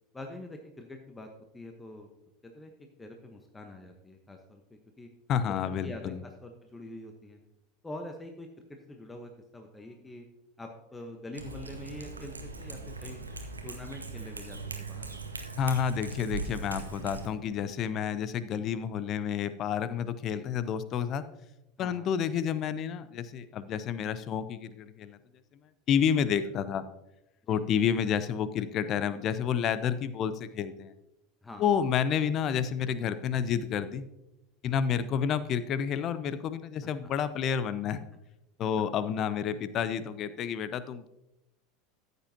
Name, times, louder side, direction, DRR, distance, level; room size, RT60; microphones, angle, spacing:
voice 1, 0.1-1.3 1.5-2.1 2.4-2.7 3.0-5.1 5.6-7.4 7.8-10.3 10.6-13.2 13.6-15.1 20.3-20.5 21.8-22.1 27.4-27.6 31.4-31.7 38.8-38.9, left 1 dB, 15° left, 4 dB, 1.1 m, -45 dB
voice 2, 5.3-6.2 15.5-21.2 21.8-25.2 25.9-26.8 27.5-30.9 31.6-34.1 34.6-38.0 38.6-41.1, left 8 dB, 40° left, 14 dB, 0.7 m, -30 dB
Cat, 11.3-17.3, right 4 dB, 85° right, 1.0 m, -40 dB
14.0 x 8.1 x 2.8 m, 0.91 s
figure-of-eight pair, 80°, 0 cm